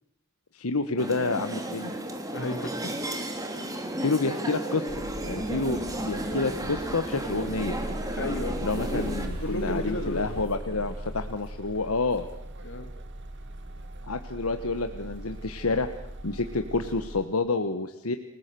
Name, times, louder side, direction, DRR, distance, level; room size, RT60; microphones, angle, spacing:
voice 1, 0.5-1.9 4.0-5.0 5.2-7.8 8.6-12.3 14.1-15.9 16.2-18.2, left 3 dB, 80° left, 8 dB, 1.3 m, -29 dB
sound 1, 1.0-9.3, right 1 dB, 15° right, 3.1 m, -33 dB
voice 2, 2.3-3.0 8.2-9.0 9.4-10.3 12.6-12.9, left 1 dB, 60° left, 7 dB, 3.0 m, -33 dB
sound 2, 4.9-17.3, right 1 dB, 55° right, 2.2 m, -39 dB
sound 3, 5.2-10.4, equal, 75° right, 6.9 m, -43 dB
28.5 x 19.0 x 6.9 m, 0.74 s
head